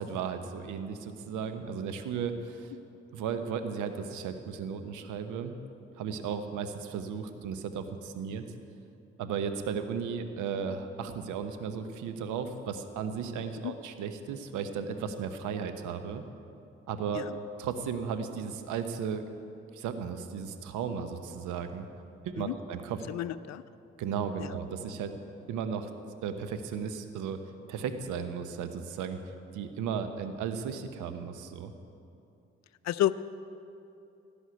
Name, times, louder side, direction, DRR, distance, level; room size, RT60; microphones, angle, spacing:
voice 1, 0.0-2.7 3.1-5.6 6.0-8.5 9.2-16.2 16.9-17.2 17.6-19.2 19.7-21.9 22.2-23.0 24.0-25.1 25.5-25.9 26.2-27.4 27.7-29.2 29.5-31.7, right 6 dB, 75° right, 9 dB, 1.0 m, -35 dB
voice 2, 23.1-23.6 24.4-24.5 32.8-33.2, left 13 dB, 60° left, 15 dB, 0.6 m, -30 dB
17.0 x 6.4 x 9.4 m, 2.7 s
hypercardioid pair, 40°, 31 cm